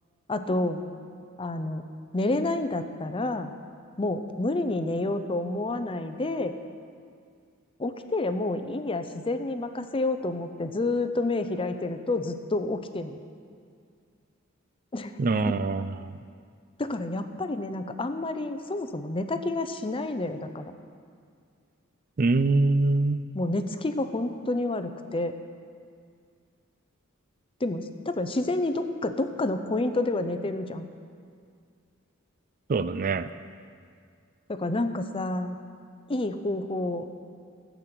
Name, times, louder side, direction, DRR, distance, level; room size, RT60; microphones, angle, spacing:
voice 1, 0.3-0.8 1.4-1.8 2.1-3.5 4.0-6.5 7.8-13.2 14.9-15.1 15.5-15.6 16.8-20.7 23.3-25.4 27.6-30.9 34.5-35.6 36.1-37.0, left 2 dB, 25° left, 9 dB, 0.6 m, -29 dB
voice 2, 15.2-16.1 22.2-23.2 32.7-33.3, right 3 dB, 40° right, 13 dB, 0.4 m, -24 dB
14.5 x 8.3 x 6.0 m, 2.2 s
head